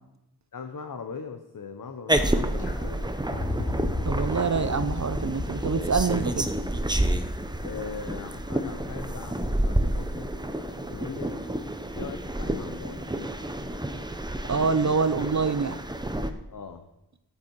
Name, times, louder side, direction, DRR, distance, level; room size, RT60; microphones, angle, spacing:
voice 1, 0.5-2.9 7.6-10.3 10.9-11.7 11.9-13.3 16.5-16.9, left 5 dB, 50° left, 7 dB, 0.9 m, -40 dB
sound 1, 2.1-16.3, right 1 dB, 10° right, 0.8 m, -29 dB
sound 2, 2.6-9.7 10.9-11.0, left 2 dB, 75° left, 2.9 m, -35 dB
voice 2, 4.0-6.5 14.5-15.8, right 5 dB, 45° right, 11 dB, 0.6 m, -25 dB
13.5 x 8.5 x 4.7 m, 0.90 s
wide cardioid pair, 75°, 41 cm